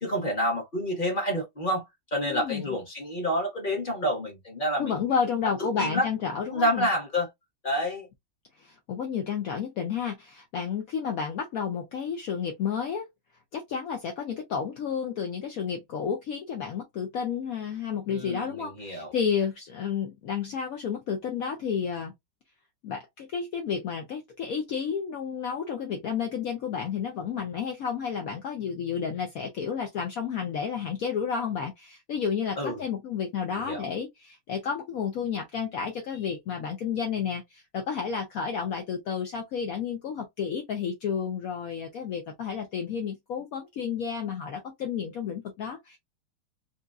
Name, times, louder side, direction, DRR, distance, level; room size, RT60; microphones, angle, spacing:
voice 1, 0.0-5.0 5.6-6.1 6.5-7.3 7.6-8.1 18.1-19.1 32.6-32.8 33.5-33.8, equal, 30° left, 1.0 m, -28 dB
voice 2, 2.2-2.7 4.8-6.9 8.6-13.1 13.5-22.1 22.8-46.0, left 7 dB, 70° left, 0.8 m, -31 dB
3.8 x 2.8 x 2.4 m
omnidirectional pair, 2.3 m